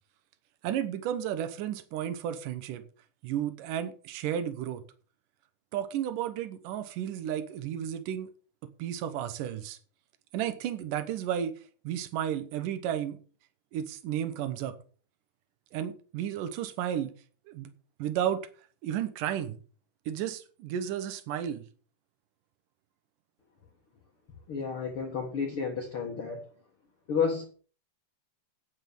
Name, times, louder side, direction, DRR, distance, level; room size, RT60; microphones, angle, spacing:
voice 1, 0.6-2.8 3.2-4.8 5.7-8.3 8.8-9.8 10.3-11.5 11.8-13.2 13.7-14.7 15.7-17.1 17.5-17.7 18.0-18.5 18.8-19.6 20.0-21.6, right 10 dB, 85° right, 1.8 m, -33 dB
voice 2, 24.5-26.4 27.1-27.4, left 6 dB, 75° left, 1.2 m, -31 dB
9.5 x 8.2 x 6.8 m
omnidirectional pair, 5.3 m